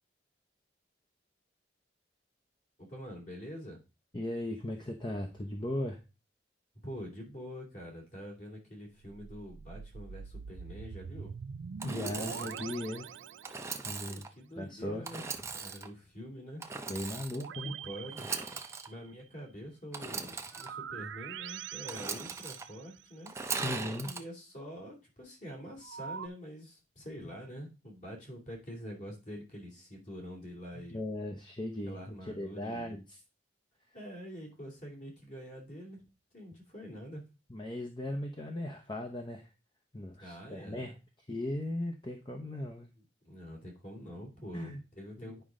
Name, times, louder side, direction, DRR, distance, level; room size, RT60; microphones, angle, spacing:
voice 1, 2.8-3.8 6.8-11.3 14.0-16.6 17.3-18.3 18.9-23.3 24.0-31.0 31.8-33.0 33.9-36.1 36.3-37.3 40.2-41.0 43.0-45.4, equal, 45° left, 0 dB, 2.9 m, -46 dB
voice 2, 4.1-6.0 11.8-13.1 13.8-14.2 14.6-15.1 16.9-17.8 23.6-24.1 30.9-32.0 32.3-33.2 37.5-39.5 39.9-40.9 41.3-42.9 44.5-44.8 45.2-45.3, left 1 dB, 25° left, 3 dB, 0.8 m, -37 dB
sound 1, 9.0-14.0 17.3-19.1 20.5-23.1 25.8-26.3, right 7 dB, 80° right, 0.4 m, -44 dB
Engine / Sawing, 11.8-12.6 13.4-14.3 15.0-15.9 16.6-17.5 18.1-18.9 19.9-20.7 21.9-22.6 23.3-24.2, right 4 dB, 15° right, 0.6 m, -39 dB
9.3 x 5.2 x 3.7 m, 0.29 s
head